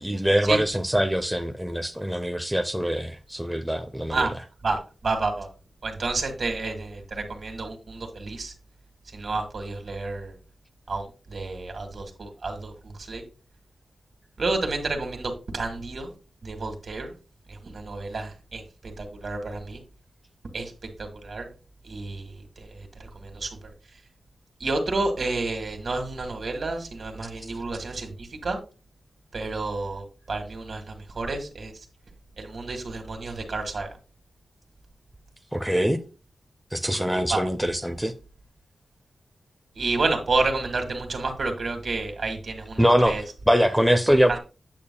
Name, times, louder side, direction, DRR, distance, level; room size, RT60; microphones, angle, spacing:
voice 1, 0.0-4.3 35.5-36.0 36.7-38.1 42.8-44.4, equal, ahead, 0.5 m, -23 dB
voice 2, 4.6-5.5 5.8-8.5 9.1-10.3 10.9-12.7 13.0-13.2 14.4-16.1 16.4-17.1 17.5-19.8 20.5-20.7 21.0-21.5 21.8-22.7 23.0-23.5 24.6-28.6 29.3-31.7 32.4-33.9 37.3-37.4 39.8-43.2 44.3-44.4, right 3 dB, 55° right, 1.7 m, -30 dB
8.5 x 7.0 x 2.2 m
wide cardioid pair, 115°, 0 cm